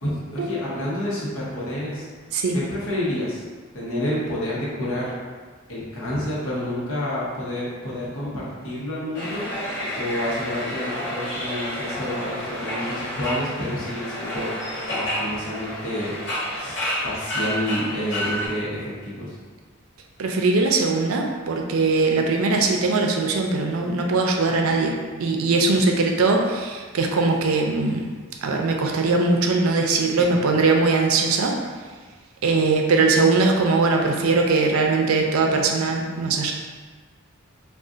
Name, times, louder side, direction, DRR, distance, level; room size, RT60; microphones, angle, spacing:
voice 1, 0.0-2.0 2.5-3.4 3.7-5.2 5.7-9.5 9.9-14.5 14.9-16.1 16.5-16.8 17.0-19.4 30.2-30.4, left 1 dB, 85° left, -7 dB, 0.9 m, -29 dB
sound 1, 9.1-18.5, equal, 60° left, 0.8 m, -30 dB
voice 2, 20.2-28.1 28.4-31.6 32.4-36.5, right 3 dB, 90° right, 2 dB, 0.4 m, -21 dB
2.4 x 2.3 x 3.8 m, 1.5 s
head